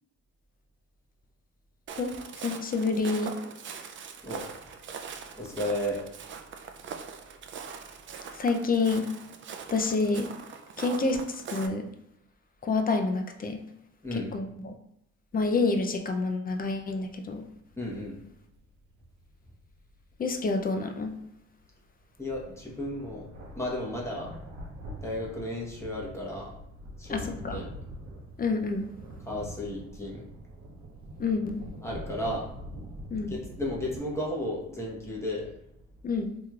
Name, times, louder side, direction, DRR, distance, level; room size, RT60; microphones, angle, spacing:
Walk footsteps, 1.9-11.7, right 6 dB, 40° right, 0.4 m, -42 dB
voice 1, 2.4-3.4 8.4-9.1 9.7-10.3 10.8-11.8 12.6-13.6 14.1-14.7 15.3-17.4 20.2-21.1 27.1-27.6 28.4-28.9 31.2-31.6 33.1-33.3 36.0-36.3, left 3 dB, 30° left, 5 dB, 0.4 m, -28 dB
voice 2, 5.4-6.0 14.0-14.3 17.8-18.2 22.2-23.2 23.5-24.3 25.0-26.5 27.0-27.7 29.3-30.2 31.8-32.5 33.3-35.5, left 1 dB, 10° left, -3 dB, 1.0 m, -33 dB
sound 1, 16.7-20.9 21.1-21.3 21.6-21.7 22.0-22.1 22.3-34.0, equal, 65° right, 0.8 m, -44 dB
3.5 x 3.0 x 2.3 m, 0.81 s
cardioid pair, 90°, 30 cm